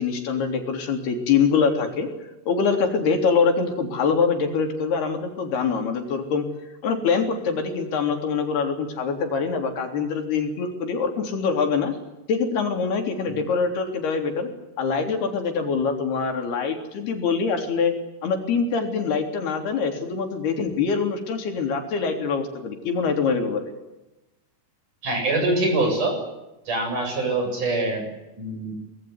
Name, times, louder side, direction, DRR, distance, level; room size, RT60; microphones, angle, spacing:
voice 1, 0.0-2.1 2.5-6.5 6.8-11.9 12.3-14.5 14.8-18.0 18.2-23.6, left 5 dB, 75° left, 5 dB, 5.5 m, -24 dB
voice 2, 25.0-26.2 26.7-28.1 28.4-28.7, right 2 dB, 50° right, 3 dB, 9.2 m, -24 dB
24.5 x 21.0 x 9.7 m, 0.99 s
omnidirectional pair, 4.6 m